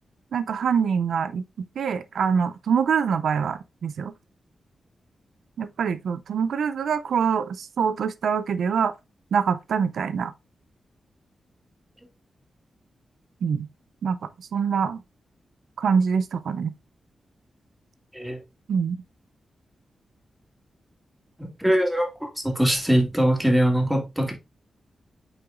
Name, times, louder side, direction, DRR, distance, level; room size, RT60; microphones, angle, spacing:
voice 1, 0.3-1.4 1.8-4.1 5.6-8.9 9.3-10.3 13.4-13.7 14.0-14.2 14.5-15.0 15.8-16.7 18.7-19.0, right 6 dB, 80° right, 0.4 m, -24 dB
voice 2, 21.4-24.3, right 1 dB, 5° right, 2.6 m, -22 dB
8.6 x 4.8 x 2.5 m
cardioid pair, 70°, 0 cm